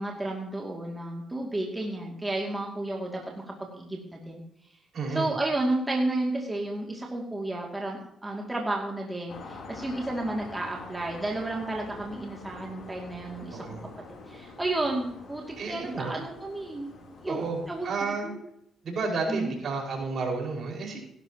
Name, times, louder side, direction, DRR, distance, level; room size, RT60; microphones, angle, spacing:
voice 1, 0.0-3.2 3.6-4.4 5.1-13.6 14.3-16.9 17.2-18.4 19.3-19.5, right 2 dB, 15° right, -1 dB, 2.5 m, -32 dB
voice 2, 4.9-5.3 13.5-13.9 15.6-16.1 17.3-18.3 18.8-21.0, right 4 dB, 55° right, 0 dB, 5.3 m, -31 dB
sound 1, 9.3-17.9, left 3 dB, 65° left, 3.5 m, -46 dB
17.5 x 11.5 x 3.0 m, 0.77 s
cardioid pair, 90°, 0 cm